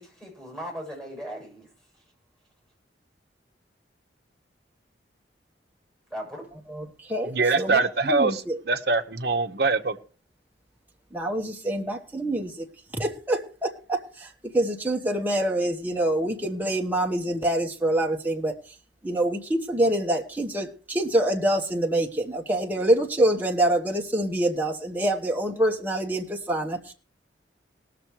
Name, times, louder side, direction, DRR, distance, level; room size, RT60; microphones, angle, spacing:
voice 1, 0.0-1.7 6.1-6.5, equal, 5° left, 7.2 m, -38 dB
voice 2, 6.7-8.6 11.1-12.7 12.9-18.5 19.0-26.9, right 1 dB, 10° right, 1.1 m, -26 dB
voice 3, 7.2-10.0, right 3 dB, 55° right, 1.0 m, -24 dB
19.0 x 6.9 x 4.7 m
head